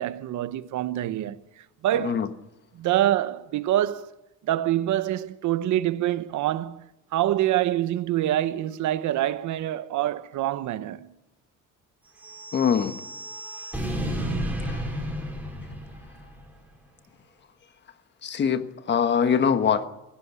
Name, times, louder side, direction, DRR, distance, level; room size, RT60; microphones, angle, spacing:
voice 1, 0.0-2.3 2.7-4.1 4.4-11.2, right 13 dB, 70° right, 1.0 m, -26 dB
sound 1, 12.2-16.5, right 1 dB, 5° right, 5.1 m, -32 dB
voice 2, 12.5-13.0 14.6-14.8 18.2-19.9, left 7 dB, 35° left, 1.3 m, -23 dB
18.0 x 16.0 x 9.7 m
cardioid pair, 170°, 31 cm